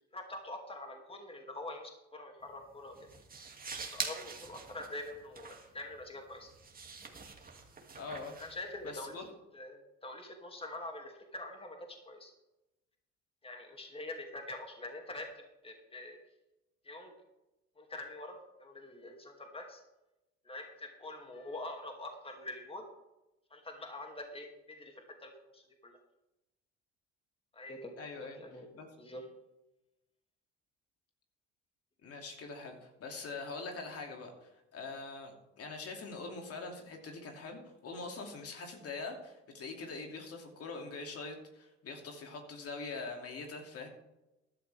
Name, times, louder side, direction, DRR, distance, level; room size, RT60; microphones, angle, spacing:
voice 1, 0.1-3.0 3.8-6.5 8.4-12.3 13.4-16.2 16.8-17.1 17.8-19.8 20.4-22.8 23.5-26.0 27.5-27.9 28.4-28.7 29.0-29.3, left 2 dB, 20° left, 3 dB, 2.6 m, -45 dB
sound 1, 2.4-9.3, right 4 dB, 30° right, 2.4 m, -45 dB
voice 2, 8.0-8.3 8.8-9.2 28.0-28.4 28.7-28.9 32.0-43.9, left 3 dB, 50° left, 2 dB, 2.7 m, -43 dB
14.5 x 11.0 x 3.5 m, 0.97 s
hypercardioid pair, 70°, 31 cm